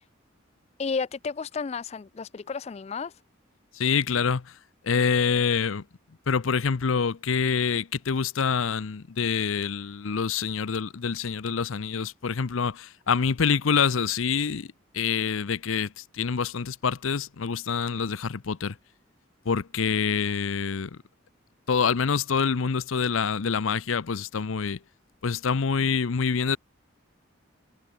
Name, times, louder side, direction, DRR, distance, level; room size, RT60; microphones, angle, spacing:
voice 1, 0.8-3.1, left 5 dB, 30° left, 0.3 m, -32 dB
voice 2, 3.7-4.6 4.8-5.8 6.3-14.7 14.9-18.8 19.5-21.0 21.7-24.8 25.2-26.6, left 6 dB, 80° left, 0.6 m, -26 dB
head